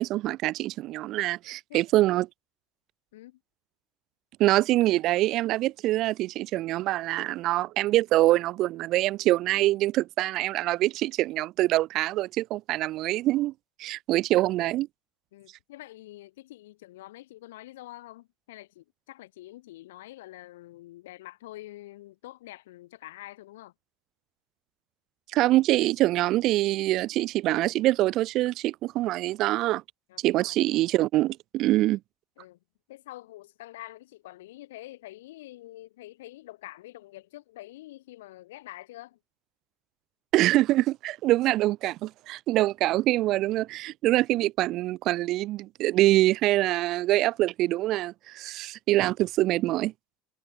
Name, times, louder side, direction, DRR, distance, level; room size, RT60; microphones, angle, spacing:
voice 1, 0.0-2.3 4.4-13.5 13.8-14.9 25.3-29.8 30.2-32.0 40.3-49.9, right 16 dB, 50° right, 0.6 m, -24 dB
voice 2, 15.3-23.7 30.1-30.7 32.4-32.6 32.9-39.2, left 16 dB, 65° left, 2.1 m, -46 dB
figure-of-eight pair, 70°, 0 cm